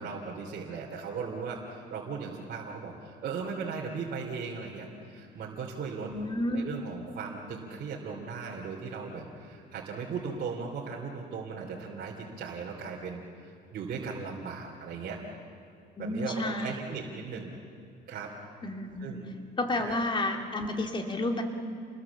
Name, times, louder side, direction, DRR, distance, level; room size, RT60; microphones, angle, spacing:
voice 1, 0.0-6.1 6.5-15.2 16.0-17.5 18.1-18.3 19.0-19.3 19.8-20.0, right 5 dB, 55° right, -3 dB, 3.1 m, -37 dB
voice 2, 6.0-6.6 16.0-16.7 18.6-19.2 19.6-21.4, left 2 dB, 25° left, 4 dB, 2.5 m, -31 dB
29.0 x 21.0 x 7.3 m, 2.4 s
cardioid pair, 115°, 19 cm